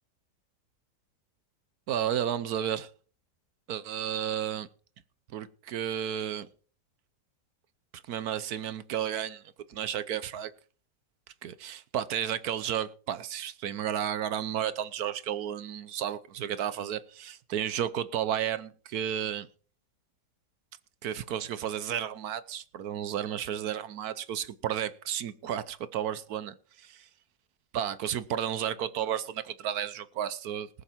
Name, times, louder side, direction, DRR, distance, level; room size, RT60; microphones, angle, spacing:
voice 1, 1.9-2.9 3.7-4.7 5.3-6.5 7.9-9.4 9.7-10.5 11.4-19.5 21.0-27.1 27.7-30.7, right 10 dB, 65° right, 1.2 m, -32 dB
19.5 x 7.1 x 4.4 m
omnidirectional pair, 1.8 m